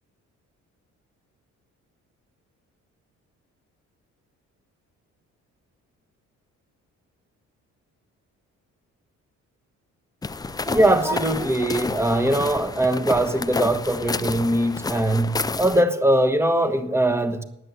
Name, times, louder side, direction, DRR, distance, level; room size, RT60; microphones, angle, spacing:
sound 1, 10.2-15.8, left 4 dB, 15° left, 0.4 m, -30 dB
voice 1, 10.7-17.4, right 1 dB, 10° right, 1.1 m, -21 dB
9.5 x 8.0 x 9.6 m
cardioid pair, 90°, 30 cm